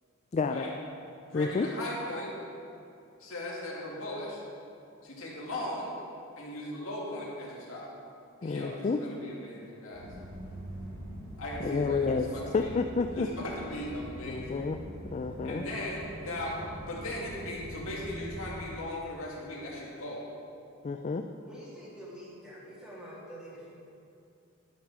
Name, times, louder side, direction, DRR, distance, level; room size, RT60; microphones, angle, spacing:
voice 1, 0.3-0.7 1.3-1.7 8.4-9.0 11.6-12.3 12.5-13.3 14.3-14.8 15.0-15.6 20.8-21.2, left 4 dB, 30° left, 6 dB, 0.3 m, -29 dB
voice 2, 1.3-2.3 3.2-4.4 5.0-5.9 6.4-7.9 8.4-10.1 11.4-12.8 13.1-14.7 15.4-20.3, left 1 dB, 70° left, -4 dB, 2.3 m, -38 dB
sound 1, 9.9-18.6, equal, 75° right, 2.9 m, -43 dB
voice 3, 21.5-23.8, equal, 5° right, -8 dB, 2.7 m, -46 dB
11.5 x 6.4 x 6.2 m, 2.6 s
head